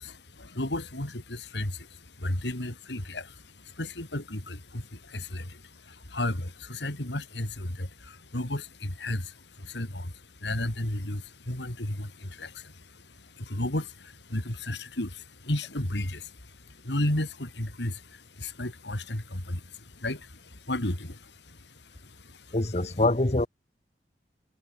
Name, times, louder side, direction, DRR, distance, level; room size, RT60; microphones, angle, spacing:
voice 1, 0.0-22.6, left 1 dB, 75° left, 3.4 m, -34 dB
voice 2, 22.5-23.5, left 2 dB, 35° left, 1.3 m, -24 dB
head